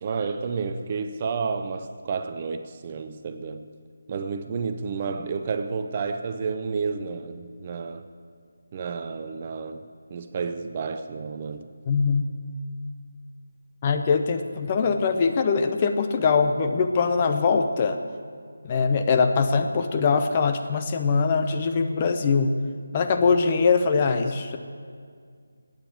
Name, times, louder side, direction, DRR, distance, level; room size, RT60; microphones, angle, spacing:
voice 1, 0.0-3.7 4.1-8.1 8.7-11.7, right 5 dB, 30° right, 8 dB, 0.6 m, -31 dB
voice 2, 11.9-12.2 13.8-18.0 18.6-22.5 22.9-24.6, left 5 dB, 25° left, 6 dB, 0.7 m, -22 dB
10.0 x 9.1 x 9.5 m, 2.1 s
figure-of-eight pair, 160°, 0 cm